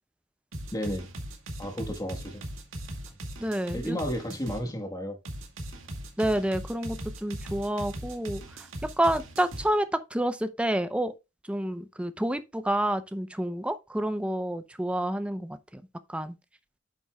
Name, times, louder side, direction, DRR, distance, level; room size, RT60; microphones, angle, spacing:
sound 1, 0.5-4.6 5.2-9.7, right 1 dB, 80° right, 2.1 m, -39 dB
voice 1, 0.7-1.1 1.6-2.4 3.7-5.2, equal, 20° left, 1.4 m, -32 dB
voice 2, 3.4-4.0 6.2-8.4 9.0-11.1 11.5-15.8 16.1-16.3, right 1 dB, 5° right, 0.6 m, -29 dB
9.5 x 7.1 x 2.3 m
head